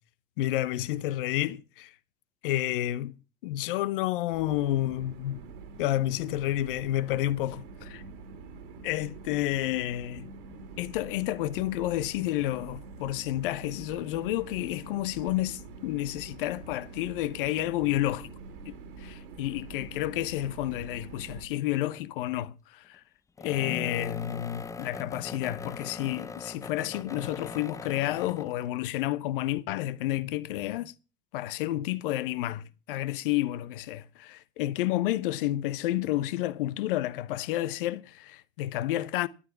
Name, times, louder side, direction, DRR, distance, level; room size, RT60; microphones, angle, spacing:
voice 1, 0.4-1.9 2.4-3.1 3.4-5.4 5.8-7.6 8.8-10.3 10.8-18.3 18.7-23.0 23.4-30.9 31.3-39.3, left 14 dB, 55° left, 0.9 m, -30 dB
sound 1, 4.3-21.5, right 4 dB, 55° right, 2.7 m, -45 dB
sound 2, 21.9-22.3 23.4-28.7, left 4 dB, 10° left, 0.6 m, -40 dB
12.5 x 9.9 x 5.8 m
figure-of-eight pair, 80°, 31 cm